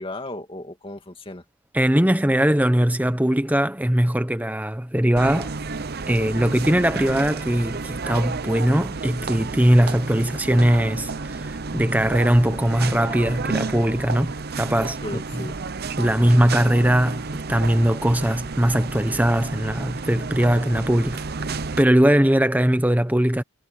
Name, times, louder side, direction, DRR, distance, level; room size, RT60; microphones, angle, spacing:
voice 1, 0.0-1.4 6.4-6.5 14.8-15.6 16.0-16.3, left 1 dB, 25° left, 2.3 m, -36 dB
voice 2, 1.7-5.5 6.1-15.0 16.0-21.2 21.5-23.4, equal, 10° right, 1.1 m, -20 dB
sound 1, 5.2-21.8, right 4 dB, 45° right, 0.7 m, -31 dB
head